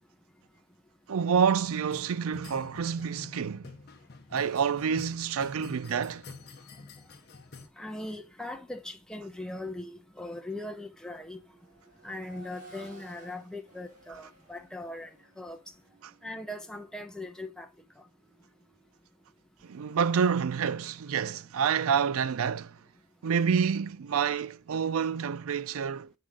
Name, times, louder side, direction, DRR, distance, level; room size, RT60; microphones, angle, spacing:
voice 1, 1.1-3.7 4.3-6.2 19.6-22.8 23.2-26.1, right 7 dB, 85° right, 0.4 m, -28 dB
sound 1, 1.6-7.7, left 3 dB, 50° left, 0.8 m, -48 dB
voice 2, 7.8-11.4 12.0-15.1 15.4-15.6 16.2-17.7, left 1 dB, 5° left, 0.8 m, -40 dB
Accelerating revving vroom, 8.9-9.1 9.5-19.4 21.1-21.2, right 2 dB, 40° right, 3.5 m, -57 dB
7.2 x 4.9 x 3.7 m
head